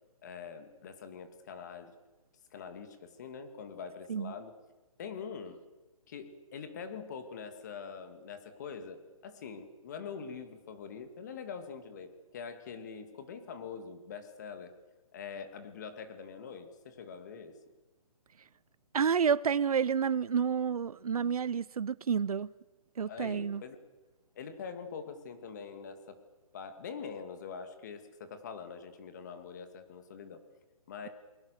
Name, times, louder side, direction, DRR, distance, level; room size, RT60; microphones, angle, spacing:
voice 1, 0.2-1.9 2.5-4.5 5.0-5.6 6.1-14.7 15.1-17.6 23.1-23.8 24.4-26.2 26.5-30.4 30.9-31.1, left 6 dB, 30° left, 2.2 m, -44 dB
voice 2, 18.9-22.5 23.0-23.6, right 7 dB, 80° right, 0.7 m, -29 dB
29.0 x 21.5 x 6.7 m
hypercardioid pair, 175°, 19 cm